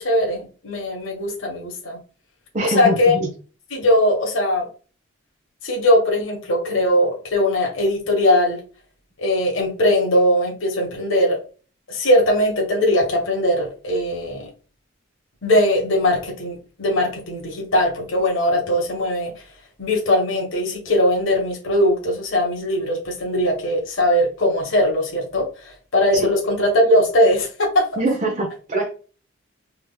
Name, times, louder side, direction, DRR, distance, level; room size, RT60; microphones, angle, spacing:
voice 1, 0.0-2.0 2.6-3.2 3.7-4.7 5.6-8.6 9.2-11.4 11.9-14.5 15.4-19.3 19.8-27.9, left 1 dB, 65° left, -1 dB, 1.2 m, -20 dB
voice 2, 2.5-3.3 26.1-26.3 28.0-28.9, right 2 dB, 35° right, -1 dB, 0.7 m, -23 dB
3.4 x 3.0 x 2.3 m, 0.37 s
head